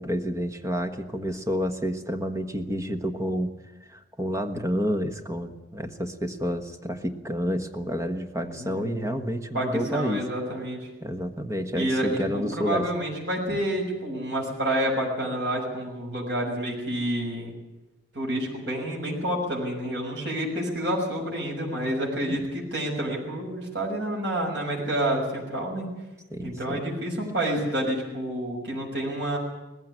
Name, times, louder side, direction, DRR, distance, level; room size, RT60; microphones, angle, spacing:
voice 1, 0.0-3.5 3.9-10.2 11.0-12.9 13.5-13.6 22.3-22.4 26.3-26.8, equal, 15° right, 7 dB, 1.3 m, -29 dB
voice 2, 8.4-9.2 9.5-10.8 11.7-17.5 18.1-25.9 26.4-29.4, right 1 dB, 85° right, -2 dB, 6.4 m, -29 dB
19.5 x 15.5 x 10.0 m, 1.0 s
head